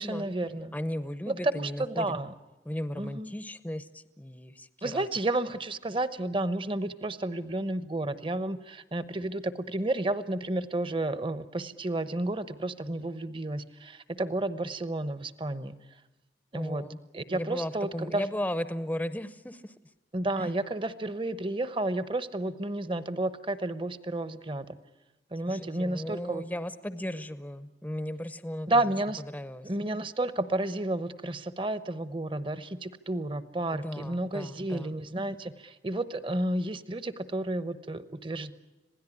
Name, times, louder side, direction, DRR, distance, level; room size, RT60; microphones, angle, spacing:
voice 1, 0.0-0.7 1.3-2.3 3.0-3.3 4.8-15.7 16.5-16.8 17.1-18.2 20.1-24.8 25.3-26.4 28.7-29.2 29.6-38.5, right 2 dB, 30° right, 13 dB, 1.0 m, -31 dB
voice 2, 0.7-2.1 2.6-5.1 16.5-17.0 17.3-19.7 20.4-20.5 25.5-28.7 29.2-29.7 33.7-34.9, equal, 10° left, 12 dB, 0.7 m, -36 dB
26.5 x 17.5 x 9.9 m, 1.1 s
head